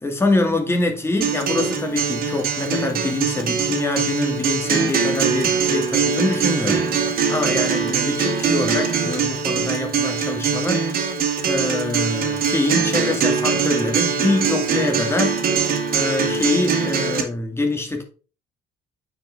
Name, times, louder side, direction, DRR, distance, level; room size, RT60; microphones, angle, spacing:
voice 1, 0.0-15.4 15.9-18.0, left 2 dB, 15° left, 2.2 m, -24 dB
Acoustic guitar, 1.2-17.2, right 6 dB, 60° right, 2.1 m, -22 dB
8.6 x 5.2 x 3.4 m
cardioid pair, 110°, 17 cm